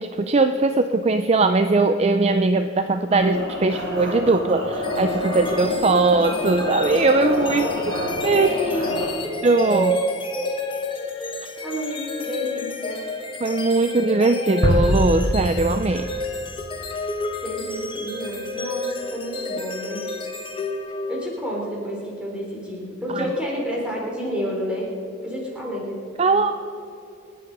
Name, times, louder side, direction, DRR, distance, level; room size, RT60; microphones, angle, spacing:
voice 1, 0.0-7.6 8.2-8.5 9.4-9.9 13.4-16.1 23.1-23.3 26.2-26.5, right 3 dB, 30° right, 9 dB, 0.4 m, -20 dB
sound 1, 3.1-9.1, left 1 dB, 85° right, 5.1 m, -27 dB
sound 2, 4.8-21.5, left 2 dB, 25° left, 1.4 m, -31 dB
voice 2, 7.3-7.9 8.4-9.0 9.7-10.5 11.6-13.1 17.4-20.1 21.1-24.9 25.2-26.0 26.3-26.4, right 1 dB, 5° right, -3 dB, 3.8 m, -29 dB
sound 3, 14.6-17.5, equal, 65° left, 3.1 m, -24 dB
27.5 x 9.4 x 5.3 m, 2.6 s
head